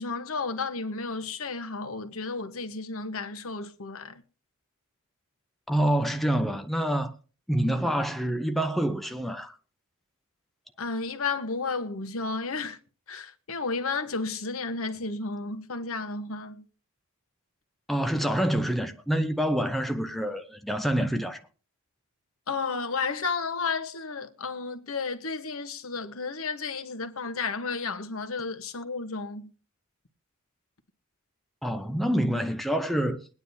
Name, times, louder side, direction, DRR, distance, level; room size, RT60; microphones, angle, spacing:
voice 1, 0.0-4.2 7.6-7.9 10.8-12.8 13.1-16.6 22.5-29.5, left 4 dB, 75° left, 1.1 m, -32 dB
voice 2, 5.7-7.1 7.5-9.5 17.9-21.4 31.6-33.3, right 1 dB, ahead, 0.6 m, -27 dB
22.0 x 9.4 x 2.7 m
head